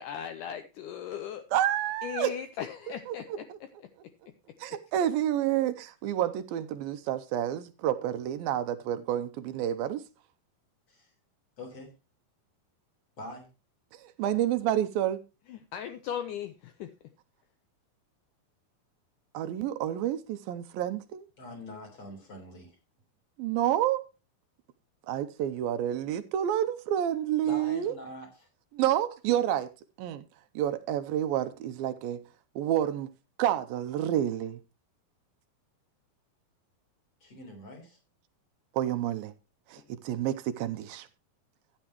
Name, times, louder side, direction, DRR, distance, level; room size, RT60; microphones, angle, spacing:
voice 1, 0.0-1.5 2.0-3.9 15.5-16.9, left 9 dB, 80° left, 2.0 m, -38 dB
voice 2, 1.5-2.3 3.1-3.6 4.6-10.0 13.9-15.2 19.3-21.3 23.4-24.1 25.1-28.0 28.7-29.7 30.0-30.3 30.6-32.2 32.6-33.1 33.4-34.6 38.7-39.3 39.7-41.1, right 11 dB, 80° right, 2.4 m, -29 dB
voice 3, 11.6-11.9 13.2-13.5 21.4-22.8 27.4-28.5 37.2-38.0, left 1 dB, 40° left, 4.6 m, -44 dB
13.5 x 10.0 x 2.9 m
omnidirectional pair, 4.3 m